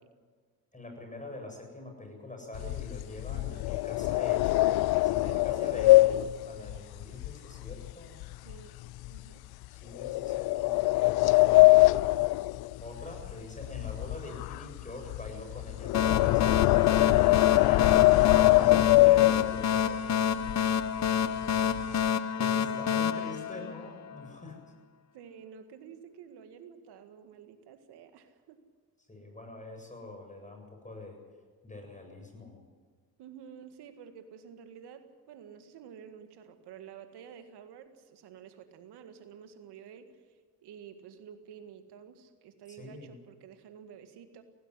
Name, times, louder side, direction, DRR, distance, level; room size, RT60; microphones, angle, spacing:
voice 1, 0.7-4.6 5.0-6.0 6.5-8.2 9.7-10.7 11.2-11.8 12.8-16.8 17.6-18.0 18.5-20.3 22.4-24.6 29.1-31.2 31.6-32.6 42.8-43.1, left 2 dB, 20° left, 3 dB, 7.8 m, -44 dB
sound 1, 2.5-7.9 8.2-8.5 9.0-9.2 10.0-13.3 13.6-19.8 20.4-20.5 20.8-21.1 21.4-22.1, left 20 dB, 70° left, 0.5 m, -23 dB
voice 2, 3.3-3.7 5.2-6.3 8.4-8.8 9.1-9.4 17.2-18.3 21.0-21.9 22.7-23.2 25.1-28.6 33.2-44.4, right 8 dB, 75° right, 8 dB, 1.9 m, -50 dB
sound 2, 15.9-24.3, left 8 dB, 45° left, 0.9 m, -29 dB
17.0 x 16.0 x 9.9 m, 1.6 s
supercardioid pair, 55°, 40 cm